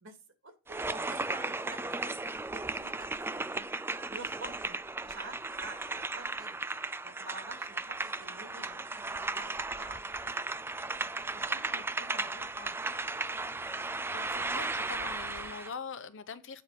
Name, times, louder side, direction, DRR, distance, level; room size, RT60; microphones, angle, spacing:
voice 1, 0.0-3.1 3.3-3.7 4.1-6.6 7.0-10.3 11.0-12.8, right 3 dB, 60° right, 2.5 m, -49 dB
sound 1, 0.7-15.7, right 3 dB, 10° right, 0.3 m, -36 dB
voice 2, 14.1-16.6, left 5 dB, 60° left, 0.9 m, -42 dB
8.9 x 4.6 x 6.8 m
head